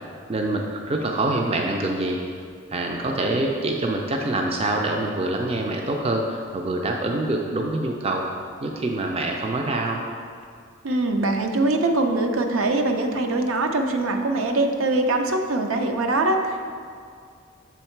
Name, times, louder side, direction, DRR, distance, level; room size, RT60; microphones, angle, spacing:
voice 1, 0.3-2.4 2.7-8.3 8.6-10.0, right 2 dB, 30° right, 1 dB, 0.3 m, -25 dB
voice 2, 10.8-16.6, right 2 dB, 75° right, 4 dB, 0.5 m, -22 dB
7.2 x 3.6 x 4.5 m, 2.1 s
head